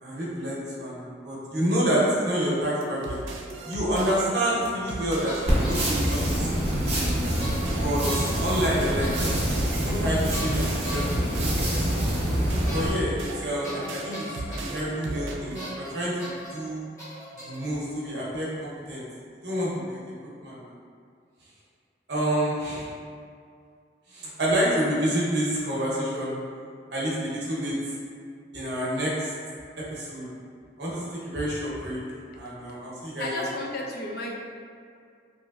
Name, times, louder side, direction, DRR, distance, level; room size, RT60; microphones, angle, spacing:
voice 1, 0.0-3.2 3.7-6.6 7.8-9.4 9.8-11.0 11.4-11.8 12.7-16.9 17.4-19.0 19.4-20.0 20.4-20.7 22.1-22.9 24.1-26.4 26.9-27.7 28.5-29.3 29.8-30.3 30.8-32.0 32.3-33.3, equal, 60° right, -6 dB, 0.8 m, -28 dB
sound 1, 2.8-15.7, right 2 dB, 80° right, 0.4 m, -37 dB
sound 2, 4.9-5.0 5.2-6.2 7.4-7.7 8.0-8.4 9.0-9.3 10.3-11.2 12.7-12.8 13.1-13.2 13.6-14.8 15.5-15.9 16.2-16.5 17.0-17.7, equal, 15° left, 0.8 m, -38 dB
sound 3, 5.5-12.9, equal, 30° right, 0.7 m, -26 dB
voice 2, 33.2-34.3, left 1 dB, 50° left, -1 dB, 0.4 m, -32 dB
3.0 x 2.9 x 2.3 m, 2.3 s
head